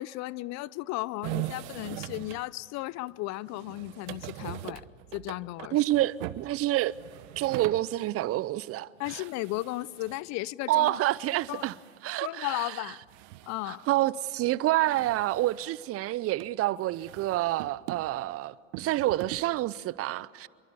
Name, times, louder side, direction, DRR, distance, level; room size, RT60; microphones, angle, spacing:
voice 1, 0.0-4.8 5.1-5.8 9.0-11.0 11.5-11.7 12.2-13.0 13.5-13.9, left 18 dB, 45° left, 0.6 m, -35 dB
sound 1, 1.2-2.5 3.1-3.2 3.5-7.9 8.3-8.4 8.7-8.8 9.0-10.3 11.1-12.1 12.9-14.1 14.4-14.5 14.9-15.8 16.4-16.5 16.9-18.2 18.7-19.5, right 17 dB, 60° right, 1.0 m, -41 dB
voice 2, 5.7-6.9 7.4-9.2 10.7-11.7 12.0-12.8 13.7-20.5, right 15 dB, 35° right, 0.6 m, -28 dB
27.5 x 23.0 x 7.0 m
hypercardioid pair, 90°, 39 cm